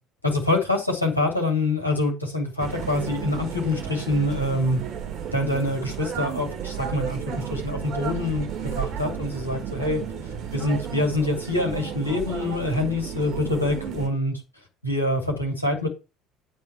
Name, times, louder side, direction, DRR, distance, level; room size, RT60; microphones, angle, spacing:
voice 1, 0.2-4.8 5.3-10.0 10.5-14.4 14.8-15.9, left 2 dB, 90° left, 0 dB, 2.7 m, -25 dB
sound 1, 2.6-14.1, right 8 dB, 45° right, 2.0 m, -33 dB
9.2 x 4.6 x 7.2 m, 0.29 s
figure-of-eight pair, 60°, 0 cm